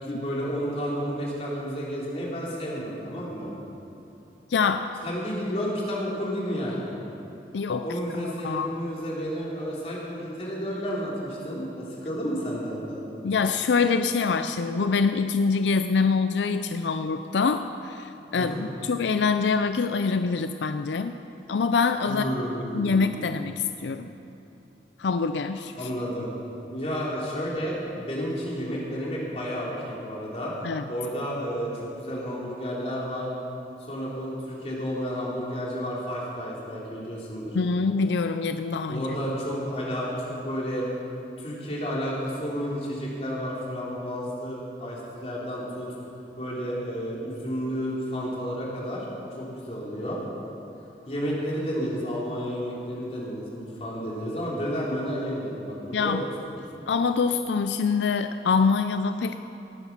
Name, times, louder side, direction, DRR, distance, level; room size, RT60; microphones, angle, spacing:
voice 1, 0.0-3.5 5.0-6.9 7.8-13.0 18.4-18.6 22.1-23.3 25.7-26.3 26.7-30.6 30.9-33.3 33.8-37.6 38.9-40.9 41.4-45.9 46.4-49.1 49.3-50.2 51.1-56.2, equal, 35° left, -5 dB, 3.4 m, -31 dB
voice 2, 4.5-4.9 7.5-7.8 8.2-8.7 13.2-21.1 21.5-22.2 22.7-24.1 25.0-25.7 30.6-30.8 37.5-39.1 55.9-56.2 56.9-59.4, left 5 dB, 85° left, 9 dB, 0.5 m, -25 dB
18.5 x 9.8 x 6.0 m, 2.9 s
head